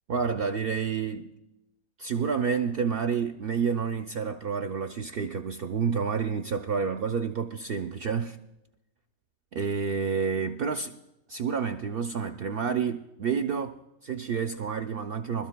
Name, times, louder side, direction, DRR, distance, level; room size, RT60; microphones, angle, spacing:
voice 1, 0.1-1.3 2.0-8.4 9.5-10.9 11.3-15.5, right 6 dB, 65° right, 0.6 m, -29 dB
23.5 x 13.0 x 2.2 m
omnidirectional pair, 1.4 m